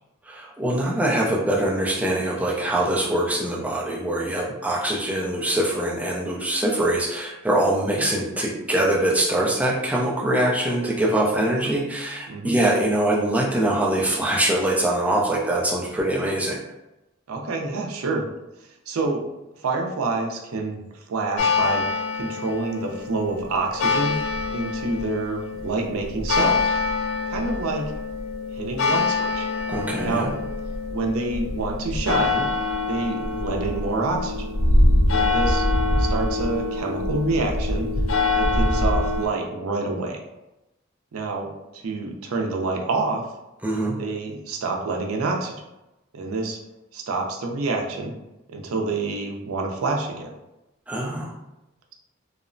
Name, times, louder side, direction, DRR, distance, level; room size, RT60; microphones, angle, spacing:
voice 1, 0.2-16.6 29.7-30.3 43.6-44.0 50.9-51.4, right 1 dB, 5° right, -4 dB, 0.4 m, -23 dB
voice 2, 17.3-18.2 18.9-19.2 19.6-20.8 21.1-24.2 24.5-26.8 27.3-27.9 28.5-29.5 30.0-30.3 30.9-32.5 32.9-34.6 35.1-35.6 36.0-37.9 38.4-40.2 41.1-43.2 44.0-45.5 46.1-46.6 46.9-48.2 48.5-50.3, right 3 dB, 90° right, 2 dB, 0.5 m, -27 dB
sound 1, 21.4-39.3, left 2 dB, 75° left, 0.4 m, -24 dB
2.8 x 2.0 x 2.5 m, 0.96 s
head